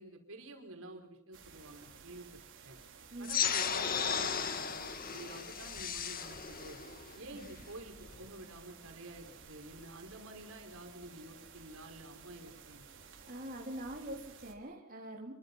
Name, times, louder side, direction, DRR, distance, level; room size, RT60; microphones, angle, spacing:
voice 1, 0.0-2.8 3.2-6.8 7.1-12.9, right 1 dB, 75° right, 4 dB, 5.2 m, -50 dB
sound 1, 1.3-14.5, right 6 dB, 60° right, 4.4 m, -55 dB
voice 2, 3.1-3.4 7.3-7.5 13.3-15.3, right 1 dB, 40° right, -1 dB, 3.6 m, -44 dB
sound 2, 3.2-8.3, left 7 dB, 45° left, 1.9 m, -35 dB
28.5 x 23.5 x 5.7 m, 0.68 s
head